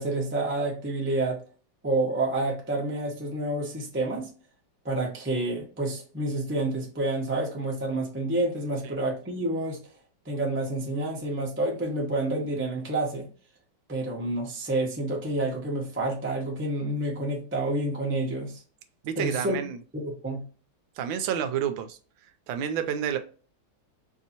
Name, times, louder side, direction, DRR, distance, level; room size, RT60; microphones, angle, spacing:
voice 1, 0.0-1.4 1.8-4.3 4.8-9.8 10.2-13.3 13.9-18.6 19.2-19.6 19.9-20.4, right 2 dB, 10° right, -2 dB, 0.6 m, -29 dB
voice 2, 19.0-19.8 21.0-22.0 22.5-23.2, right 9 dB, 85° right, 8 dB, 1.3 m, -29 dB
4.7 x 2.7 x 2.8 m, 0.39 s
omnidirectional pair, 2.1 m